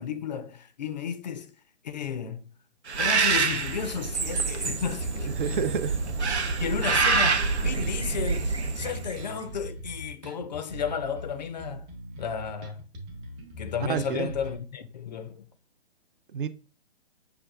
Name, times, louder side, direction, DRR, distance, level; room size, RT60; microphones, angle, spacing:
voice 1, 0.0-1.5 1.8-2.5 3.0-5.6 6.6-11.9 12.2-12.8 13.6-15.5, left 7 dB, 40° left, 0.4 m, -33 dB
Bird, 2.9-9.3, right 4 dB, 80° right, 0.8 m, -26 dB
Bass guitar, 5.0-14.6, equal, 25° right, 0.9 m, -41 dB
voice 2, 5.2-6.0 13.8-14.3 16.3-16.5, right 7 dB, 50° right, 0.4 m, -29 dB
6.4 x 2.3 x 2.3 m
figure-of-eight pair, 130°, 33 cm